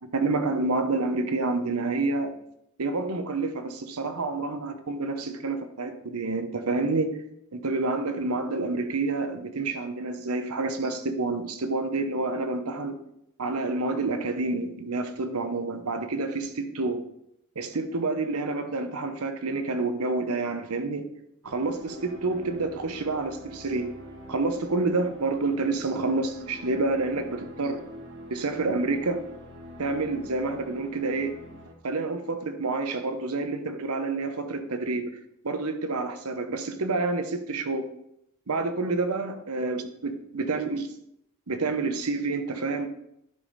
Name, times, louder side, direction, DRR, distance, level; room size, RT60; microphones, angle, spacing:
voice 1, 0.0-2.4 2.8-7.2 7.5-13.0 13.4-17.0 17.6-21.1 21.4-23.9 24.3-27.8 28.3-29.2 29.8-31.4 31.8-35.1 35.4-37.9 38.5-40.8 41.5-42.9, right 3 dB, 90° right, 8 dB, 0.9 m, -28 dB
sound 1, 21.4-31.7, equal, 60° right, 1.1 m, -45 dB
10.5 x 5.1 x 4.1 m, 0.78 s
head